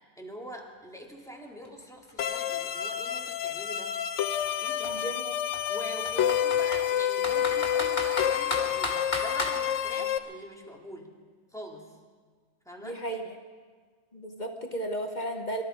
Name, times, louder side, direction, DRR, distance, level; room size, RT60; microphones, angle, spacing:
voice 1, 0.2-4.0 4.6-5.0 5.7-11.1 11.5-11.9 12.7-13.0, equal, 5° left, -1 dB, 2.0 m, -44 dB
Computer keyboard, 1.3-1.4 1.6-3.6 4.4-4.5 4.8-4.9 5.5-6.8 7.2-9.6, left 1 dB, 60° left, 2.3 m, -34 dB
sound 1, 2.2-10.2, left 10 dB, 85° left, 1.0 m, -29 dB
voice 2, 4.9-5.4 12.8-13.2 14.1-15.6, right 1 dB, 40° left, 4 dB, 1.1 m, -34 dB
23.0 x 13.0 x 4.9 m, 1.5 s
omnidirectional pair, 1.2 m